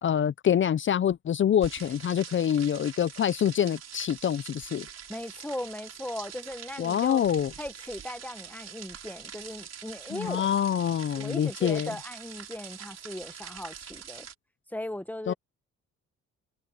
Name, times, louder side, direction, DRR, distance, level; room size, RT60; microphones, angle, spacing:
voice 1, 0.0-4.9 6.8-7.5 10.1-11.9 15.3-15.4, left 9 dB, 40° left, 0.5 m, -26 dB
sound 1, 1.6-14.3, right 8 dB, 55° right, 5.2 m, -44 dB
voice 2, 5.1-7.2 7.6-10.5 11.1-14.3 14.7-15.3, left 1 dB, 5° left, 1.4 m, -38 dB
open air
cardioid pair, 90°, 30 cm